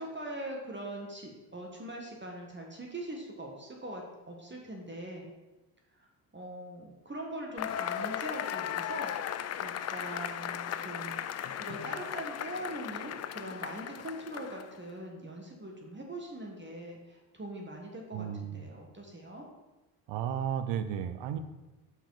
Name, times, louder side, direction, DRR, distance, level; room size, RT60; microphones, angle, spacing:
voice 1, 0.0-5.3 6.3-11.2 11.5-19.4, right 1 dB, 25° right, 0 dB, 1.6 m, -42 dB
Cheering / Applause / Crowd, 7.6-14.8, left 10 dB, 35° left, 0.4 m, -37 dB
voice 2, 18.1-18.7 20.1-21.4, right 9 dB, 65° right, 10 dB, 0.7 m, -33 dB
5.7 x 4.9 x 4.9 m, 1.1 s
hypercardioid pair, 50°, 46 cm